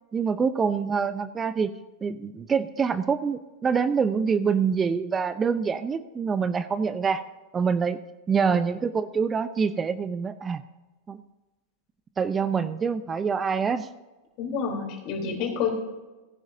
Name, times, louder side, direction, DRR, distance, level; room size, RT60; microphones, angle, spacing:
voice 1, 0.1-1.7 2.0-7.3 7.5-8.0 8.3-10.6 11.1-11.2 12.2-13.9, right 6 dB, 20° right, 13 dB, 0.6 m, -25 dB
voice 2, 14.4-15.7, left 6 dB, 50° left, 3 dB, 3.5 m, -28 dB
18.0 x 10.5 x 2.7 m, 1.2 s
hypercardioid pair, 95°, 0 cm